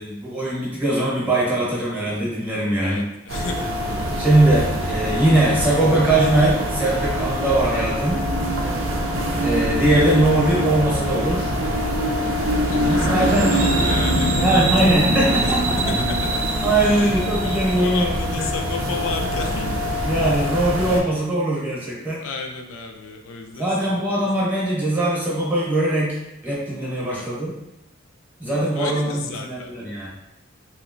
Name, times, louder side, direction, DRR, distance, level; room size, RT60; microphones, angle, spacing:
voice 1, 0.0-3.0 4.2-8.2 9.4-11.5 12.8-13.6 14.4-15.8 16.6-18.5 20.0-22.2 23.5-26.2 26.4-27.5 28.4-30.1, right 1 dB, 10° right, -6 dB, 0.9 m, -21 dB
voice 2, 2.8-4.2 12.7-15.5 15.9-16.0 16.8-19.7 22.2-24.3 27.1-27.3 28.4-29.7, left 4 dB, 85° left, 3 dB, 0.4 m, -33 dB
sound 1, 3.3-21.0, equal, 80° right, 0.5 m, -23 dB
3.0 x 2.8 x 2.5 m, 0.90 s
head